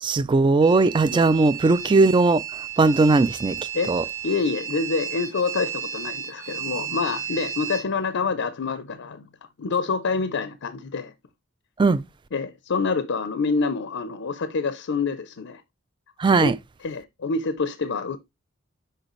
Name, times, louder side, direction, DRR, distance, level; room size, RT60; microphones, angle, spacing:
voice 1, 0.0-2.4 2.8-3.6 3.9-4.0 11.8-12.0 16.2-16.5, right 3 dB, 20° right, 0.3 m, -18 dB
sound 1, 0.6-7.8, right 9 dB, 40° right, 1.4 m, -33 dB
voice 2, 4.2-9.3 9.6-11.1 12.3-15.6 16.4-16.5 16.8-18.2, left 4 dB, 60° left, 0.5 m, -27 dB
6.5 x 5.2 x 3.0 m
head